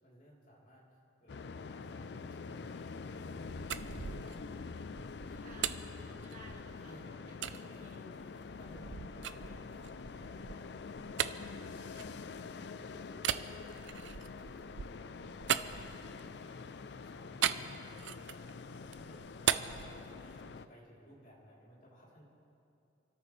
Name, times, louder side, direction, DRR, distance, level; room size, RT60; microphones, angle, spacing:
voice 1, 0.0-0.9 1.2-1.4 1.6-5.3 6.8-8.1 8.6-9.6 10.0-14.2 14.5-22.2, equal, 45° left, -6 dB, 3.5 m, -59 dB
sound 1, 1.3-20.7, left 4 dB, 65° left, 0.4 m, -46 dB
sound 2, 3.3-6.8 7.4-7.6 8.2-12.6 13.2-16.4 17.4-18.5 18.8-20.6, right 9 dB, 80° right, 0.5 m, -38 dB
voice 2, 5.3-6.9 7.5-8.0, right 2 dB, 40° right, -2 dB, 1.9 m, -55 dB
29.0 x 13.5 x 3.3 m, 2.7 s
head